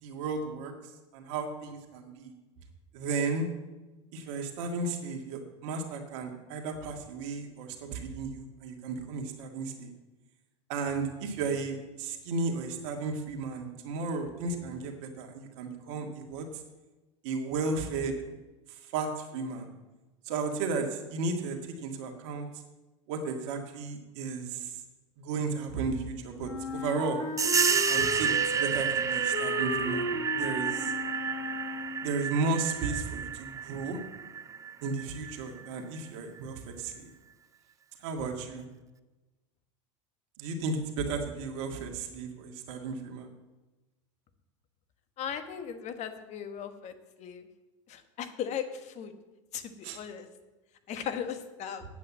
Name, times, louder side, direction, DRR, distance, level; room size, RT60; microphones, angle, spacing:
voice 1, 0.0-0.7 1.1-2.3 2.9-3.5 4.1-9.9 10.7-16.5 17.2-18.2 18.7-19.7 20.3-22.5 23.1-24.8 25.2-27.2 27.9-30.9 32.0-34.0 34.8-37.1 38.0-38.7 40.4-43.3 49.8-50.0, right 4 dB, 65° right, 3 dB, 1.9 m, -34 dB
Wind instrument woodwind instrument, 26.4-32.2, left 1 dB, 25° left, 3.9 m, -35 dB
sound 1, 27.4-35.7, right 7 dB, 20° right, 0.6 m, -30 dB
voice 2, 45.2-47.5 47.9-49.1 49.5-50.3 50.9-51.8, left 8 dB, 45° left, 8 dB, 1.5 m, -37 dB
8.6 x 8.2 x 7.4 m, 1.1 s
hypercardioid pair, 95°, 16 cm